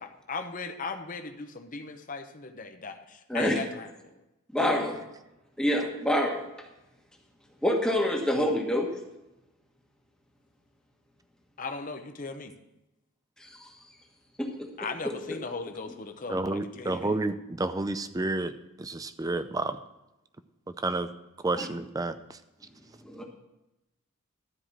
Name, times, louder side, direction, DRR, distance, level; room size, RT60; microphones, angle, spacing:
voice 1, 0.0-4.2 4.6-5.0 11.6-12.5 14.8-17.2, left 4 dB, 40° left, 6 dB, 0.9 m, -38 dB
voice 2, 4.5-5.0 5.6-6.4 7.6-8.9 13.4-13.7 14.4-14.7 15.0-15.1 21.6-21.7 23.0-23.2, left 1 dB, 5° left, 0 dB, 1.3 m, -27 dB
voice 3, 16.3-18.5 18.8-19.8 20.8-21.1 21.4-22.2, right 2 dB, 15° right, 11 dB, 0.5 m, -30 dB
12.5 x 4.9 x 7.3 m, 0.95 s
head